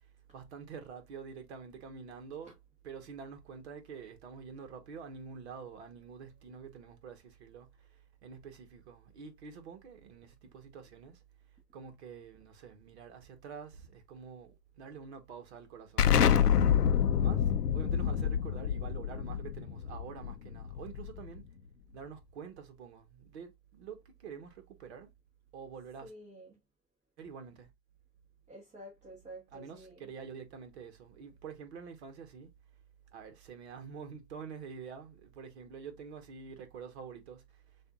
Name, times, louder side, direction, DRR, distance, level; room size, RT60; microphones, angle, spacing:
voice 1, 0.3-2.6 2.8-11.2 11.7-16.5 17.2-21.5 21.9-25.1 25.5-26.1 27.2-27.7 29.5-32.5 33.1-37.4, right 6 dB, 45° right, 1.3 m, -47 dB
Explosion, 16.0-21.4, left 8 dB, 70° left, 0.7 m, -27 dB
voice 2, 26.0-26.6 28.5-30.1, right 1 dB, 15° right, 1.4 m, -50 dB
6.6 x 2.6 x 2.5 m
hypercardioid pair, 135°, 48 cm